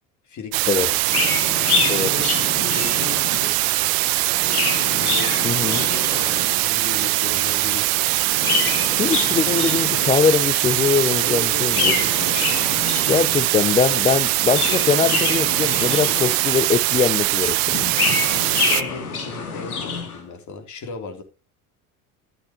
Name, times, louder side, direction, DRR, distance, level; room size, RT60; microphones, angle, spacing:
voice 1, 0.2-1.0 1.3-3.6 4.9-8.1 11.2-12.5 13.6-14.0 18.3-21.2, left 4 dB, 40° left, 3.3 m, -36 dB
sound 1, 0.5-18.8, right 20 dB, 55° right, 0.7 m, -21 dB
Chirp tweet, 1.0-3.5 4.2-6.6 8.2-10.4 11.6-13.5 14.3-16.6 17.7-20.2, left 5 dB, 90° left, 2.8 m, -26 dB
voice 2, 5.4-5.8 8.9-11.9 13.1-17.9, left 6 dB, 15° left, 0.4 m, -22 dB
12.0 x 8.3 x 3.0 m
hypercardioid pair, 80°, 43 cm